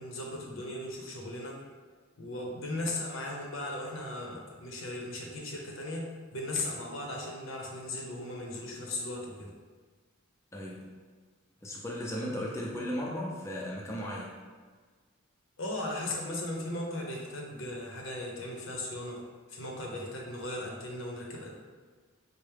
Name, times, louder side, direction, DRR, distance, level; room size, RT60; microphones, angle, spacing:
voice 1, 0.0-1.6 2.2-9.5 15.6-19.2 19.5-21.5, left 1 dB, 70° left, -1 dB, 0.7 m, -37 dB
voice 2, 10.5-10.9 11.6-14.3, equal, 15° left, -3 dB, 0.4 m, -36 dB
4.4 x 2.0 x 3.3 m, 1.5 s
head